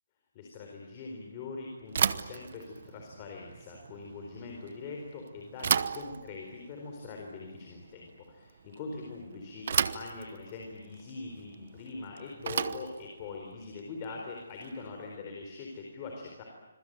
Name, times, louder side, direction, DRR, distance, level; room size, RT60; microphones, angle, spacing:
voice 1, 0.3-16.4, left 4 dB, 20° left, 1 dB, 4.2 m, -42 dB
Bicycle / Thump thud, 1.9-15.0, right 7 dB, 40° right, 1.0 m, -35 dB
26.0 x 22.5 x 9.0 m, 1.1 s
hypercardioid pair, 175°, 0 cm